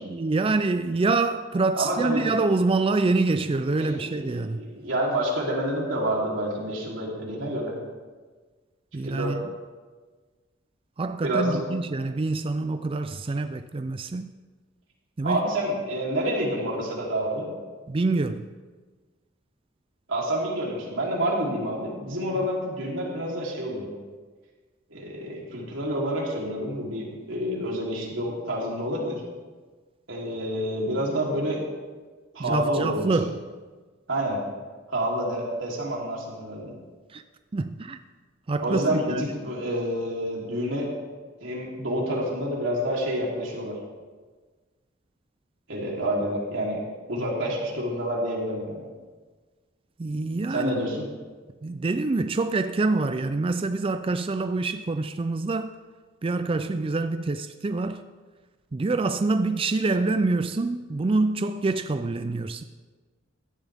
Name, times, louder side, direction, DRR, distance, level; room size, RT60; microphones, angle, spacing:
voice 1, 0.0-4.6 8.9-9.5 11.0-14.3 15.2-15.4 17.9-18.5 32.4-33.4 37.1-37.2 37.5-38.0 38.5-39.2 50.0-50.8 51.6-55.7 56.2-58.0 58.7-62.6, right 3 dB, 30° right, 0.4 m, -26 dB
voice 2, 1.8-2.3 3.8-7.7 9.0-9.3 11.2-11.6 15.2-17.5 20.1-23.9 24.9-29.2 30.1-31.6 32.3-33.1 34.1-34.4 34.9-36.7 38.6-40.9 41.4-43.8 45.7-46.8 47.1-48.8 50.5-51.0, right 1 dB, 90° right, 3.4 m, -28 dB
16.0 x 12.0 x 3.5 m
head